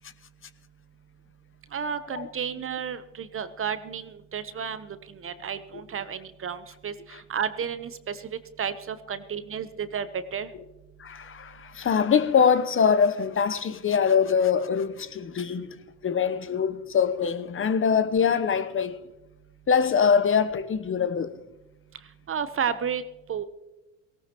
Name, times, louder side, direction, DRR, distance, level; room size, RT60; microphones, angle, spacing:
voice 1, 1.7-8.2 8.6-10.1 10.3-10.5 22.3-23.0 23.3-23.4, right 7 dB, 35° right, 1.0 m, -32 dB
voice 2, 11.0-19.0 19.7-21.3, left 6 dB, 30° left, 1.0 m, -23 dB
18.0 x 17.5 x 3.0 m
hypercardioid pair, 70°, 40 cm